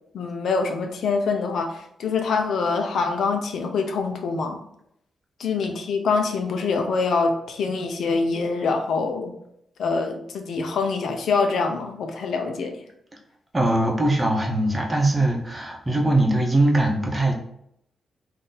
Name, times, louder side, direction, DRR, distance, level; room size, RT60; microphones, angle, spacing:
voice 1, 0.1-4.6 5.4-9.3 9.8-12.8, left 4 dB, 75° left, 5 dB, 0.7 m, -25 dB
voice 2, 13.5-17.3, right 1 dB, 20° right, 1 dB, 0.9 m, -21 dB
3.9 x 2.7 x 4.0 m, 0.73 s
cardioid pair, 100°, 0 cm